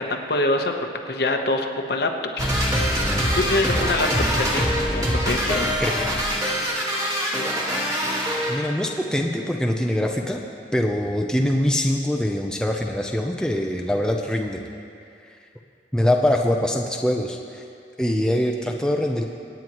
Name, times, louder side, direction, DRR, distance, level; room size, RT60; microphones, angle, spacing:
voice 1, 0.0-2.1 2.4-4.1 4.4-5.7, left 2 dB, 65° left, 3 dB, 1.0 m, -25 dB
sound 1, 2.4-8.6, equal, 20° right, 1.7 m, -23 dB
voice 2, 8.5-10.4 10.7-14.6 15.9-17.6 18.0-19.2, left 1 dB, 5° left, 1 dB, 0.6 m, -23 dB
25.0 x 9.2 x 3.1 m, 2.5 s
head